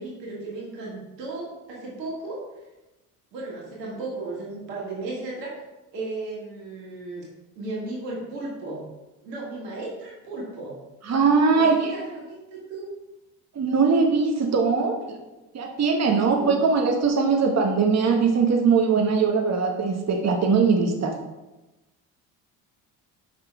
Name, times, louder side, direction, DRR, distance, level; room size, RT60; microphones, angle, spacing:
voice 1, 0.0-2.4 3.3-5.5 5.9-7.2 7.6-8.8 9.2-10.8 11.5-12.9 16.0-16.6, right 2 dB, 90° right, -4 dB, 1.9 m, -35 dB
voice 2, 11.1-11.9 13.5-15.2 15.5-21.1, right 5 dB, 35° right, 2 dB, 1.2 m, -21 dB
6.1 x 5.5 x 3.5 m, 1.0 s
hypercardioid pair, 60°, 48 cm